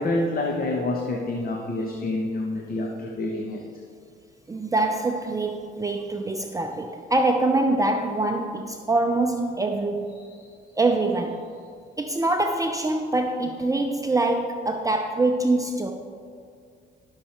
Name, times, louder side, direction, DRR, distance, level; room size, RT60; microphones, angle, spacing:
voice 1, 0.0-3.6 10.2-10.5, left 2 dB, 45° left, 1.1 m, -28 dB
voice 2, 4.5-10.2 10.8-11.5 12.0-15.9, right 2 dB, 15° right, 0.6 m, -24 dB
11.5 x 6.5 x 4.3 m
cardioid pair, 90°, 20 cm